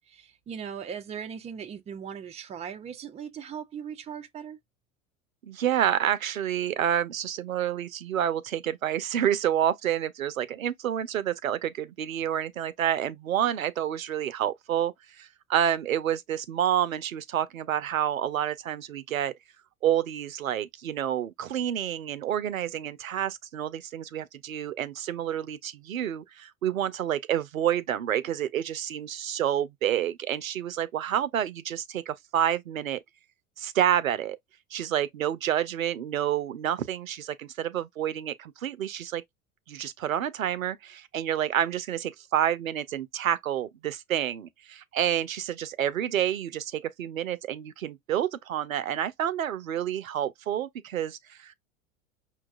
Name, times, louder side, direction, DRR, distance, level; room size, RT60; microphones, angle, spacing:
voice 1, 0.1-4.6, right 7 dB, 15° right, 0.5 m, -39 dB
voice 2, 5.4-19.3 19.8-33.0 33.6-34.4 34.7-39.2 39.7-51.5, right 10 dB, 85° right, 0.6 m, -29 dB
5.7 x 2.3 x 2.4 m
figure-of-eight pair, 80°, 40 cm